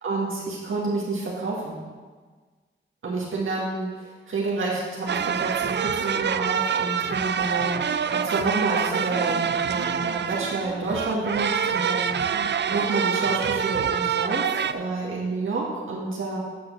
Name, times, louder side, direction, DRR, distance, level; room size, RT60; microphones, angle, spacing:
voice 1, 0.0-1.8 3.0-12.1 12.7-16.4, right 3 dB, 75° right, -5 dB, 1.9 m, -29 dB
sound 1, 5.1-14.7, right 7 dB, 60° right, 0.4 m, -26 dB
8.7 x 6.2 x 6.1 m, 1.4 s
cardioid pair, 60°, 21 cm